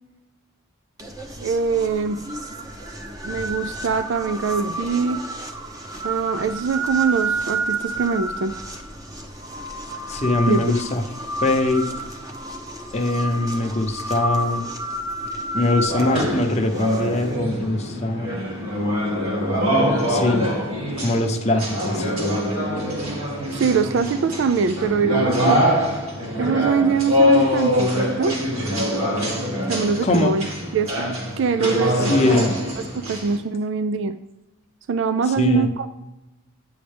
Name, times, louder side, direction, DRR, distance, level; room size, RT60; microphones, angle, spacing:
sound 1, 1.0-17.4, right 2 dB, 15° right, 0.8 m, -30 dB
voice 1, 1.4-2.2 3.2-5.2 6.0-8.5 10.5-10.6 23.5-25.6 26.4-28.4 29.7-30.5 30.7-32.5 32.9-34.2 34.9-35.9, right 5 dB, 60° right, 11 dB, 0.3 m, -23 dB
voice 2, 10.1-11.0 11.4-11.9 12.9-14.6 15.5-18.3 20.1-20.5 21.0-22.2 30.0-30.4 32.0-32.5 35.4-35.7, left 2 dB, 30° left, 3 dB, 0.7 m, -22 dB
sound 2, 15.9-33.4, equal, 80° right, 2.1 m, -24 dB
9.2 x 6.4 x 3.4 m, 0.99 s
head